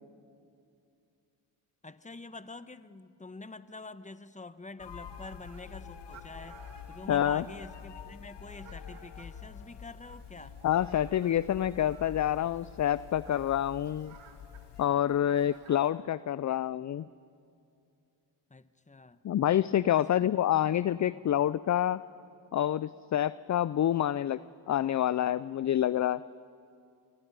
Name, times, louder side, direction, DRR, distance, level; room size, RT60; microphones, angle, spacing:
voice 1, 1.8-10.6 18.5-19.2 19.9-20.3 21.0-21.2, left 3 dB, 15° left, 13 dB, 1.1 m, -46 dB
sound 1, 4.8-14.9, left 7 dB, 60° left, 1.2 m, -47 dB
Fowl, 5.1-15.9, right 8 dB, 85° right, 1.8 m, -59 dB
voice 2, 7.1-7.4 10.6-14.1 14.8-17.1 19.2-22.0 22.5-26.2, left 11 dB, 40° left, 18 dB, 0.5 m, -27 dB
27.0 x 23.0 x 5.5 m, 2.4 s
supercardioid pair, 50°, 48 cm